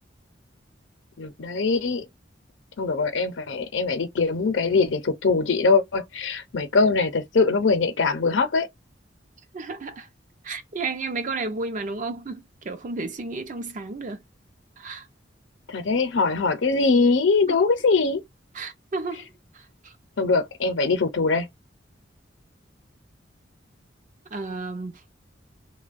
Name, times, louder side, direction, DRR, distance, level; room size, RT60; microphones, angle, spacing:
voice 1, 1.2-2.0 2.8-8.7 15.7-18.2 20.2-21.5, left 4 dB, 80° left, 0.6 m, -22 dB
voice 2, 9.5-10.1 10.4-14.2 14.8-15.1 17.5-17.6 18.5-19.3 19.5-19.9 24.3-25.0, right 3 dB, 45° right, 0.5 m, -32 dB
2.9 x 2.2 x 2.5 m
head